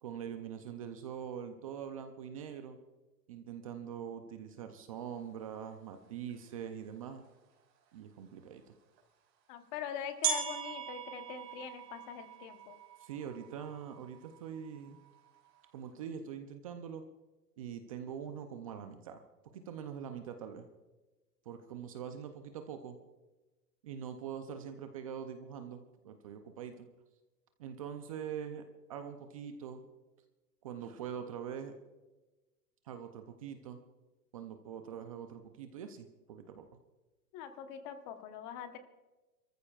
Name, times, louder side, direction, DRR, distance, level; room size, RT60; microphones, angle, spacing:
voice 1, 0.0-2.8 3.3-7.3 7.9-8.8 13.0-15.0 15.7-17.0 17.6-19.2 19.5-20.7 21.5-23.0 23.8-26.9 27.6-28.6 28.9-29.8 30.6-31.7 32.9-33.8 34.3-36.7, right 8 dB, 25° right, 7 dB, 0.5 m, -43 dB
sound 1, 6.3-6.4 7.2-7.3 9.0-9.1 10.2-15.8, right 8 dB, 40° right, 3.8 m, -40 dB
voice 2, 9.5-12.8 37.3-38.8, left 8 dB, 30° left, 8 dB, 1.1 m, -43 dB
28.5 x 14.0 x 2.4 m, 1.1 s
hypercardioid pair, 145°, 49 cm